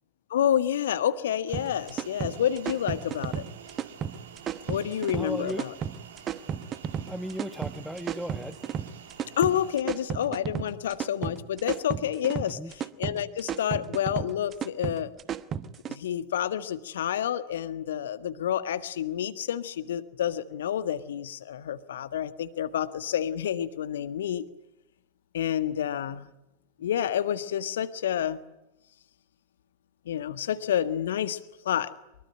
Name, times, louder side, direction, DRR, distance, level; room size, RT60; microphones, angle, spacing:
voice 1, 0.3-3.4 4.7-5.7 9.4-15.1 15.9-24.5 25.3-26.3 26.8-28.4 30.0-31.4 31.6-31.9, left 10 dB, 60° left, 12 dB, 1.6 m, -29 dB
sound 1, 1.5-16.0, right 8 dB, 25° right, 1.1 m, -34 dB
sound 2, 1.5-9.8, right 7 dB, 60° right, 3.1 m, -48 dB
voice 2, 5.1-5.7 7.1-8.6 12.5-12.7, equal, ahead, 14 dB, 1.2 m, -36 dB
24.0 x 23.0 x 9.2 m, 0.90 s
figure-of-eight pair, 90°, 0 cm